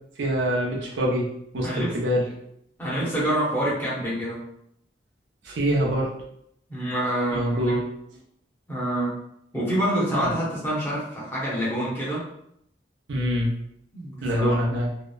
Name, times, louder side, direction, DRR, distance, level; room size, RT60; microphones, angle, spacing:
voice 1, 0.2-1.3 1.5-2.2 5.4-6.1 7.3-7.9 10.2-10.3 13.1-13.5 14.2-14.9, equal, 85° right, -2 dB, 0.6 m, -24 dB
voice 2, 1.6-1.9 2.8-4.4 6.7-7.8 8.7-9.1 9.5-12.2 13.9-14.5, right 1 dB, 10° left, -8 dB, 0.8 m, -26 dB
2.8 x 2.0 x 2.2 m, 0.73 s
head